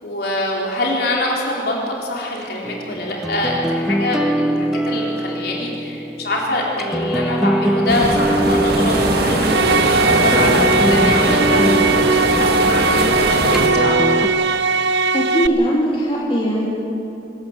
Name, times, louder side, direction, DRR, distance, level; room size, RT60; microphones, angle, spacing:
voice 1, 0.0-14.2, left 1 dB, 55° left, -2 dB, 4.0 m, -24 dB
sound 1, 2.6-14.3, right 1 dB, ahead, 0.6 m, -22 dB
sound 2, 7.9-13.7, right 2 dB, 55° right, 1.9 m, -20 dB
sound 3, 9.4-15.5, right 3 dB, 70° right, 0.6 m, -19 dB
voice 2, 15.1-16.7, right 1 dB, 25° left, -5 dB, 2.8 m, -19 dB
25.0 x 14.0 x 7.7 m, 2.8 s
head